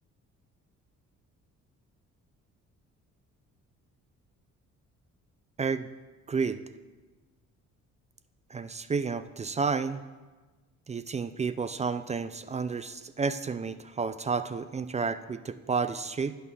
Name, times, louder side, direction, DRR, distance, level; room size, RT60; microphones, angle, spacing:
voice 1, 5.6-5.9 6.3-6.6 8.5-10.0 10.9-16.4, right 5 dB, 25° right, 13 dB, 0.4 m, -31 dB
8.4 x 5.4 x 6.3 m, 1.3 s
cardioid pair, 90°, 30 cm